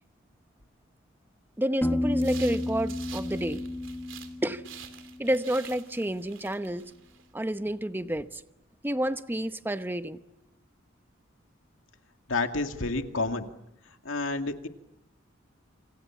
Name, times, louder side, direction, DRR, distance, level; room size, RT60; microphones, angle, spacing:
voice 1, 1.6-3.6 4.4-4.6 5.2-6.9 7.3-8.4 8.8-10.2, right 1 dB, 10° right, 10 dB, 0.9 m, -29 dB
Piano, 1.8-5.5, left 1 dB, 10° left, 1.4 m, -32 dB
sound 1, 2.1-4.3 4.6-7.2, right 10 dB, 70° right, 3.1 m, -48 dB
voice 2, 12.3-13.5 14.0-14.7, left 3 dB, 80° left, 6 dB, 2.2 m, -29 dB
28.0 x 27.0 x 7.3 m, 0.84 s
head